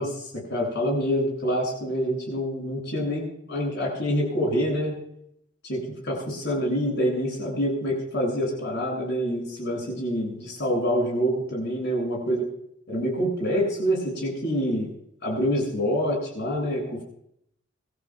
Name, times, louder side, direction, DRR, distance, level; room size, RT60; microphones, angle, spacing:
voice 1, 0.0-5.0 5.6-12.5 12.9-14.9 15.2-17.0, equal, 60° left, -2 dB, 7.5 m, -26 dB
25.0 x 14.5 x 2.5 m, 0.73 s
head